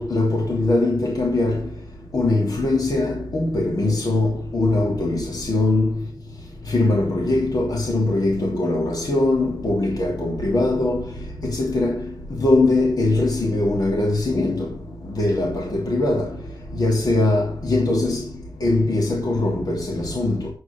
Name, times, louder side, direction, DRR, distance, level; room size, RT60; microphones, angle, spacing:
voice 1, 0.0-1.6 2.1-5.9 6.7-11.0 11.4-14.7 15.1-16.4 16.7-18.3 18.6-20.5, left 2 dB, 55° left, 2.9 m, -21 dB
9.5 x 8.0 x 4.6 m
wide cardioid pair, 105°, 8 cm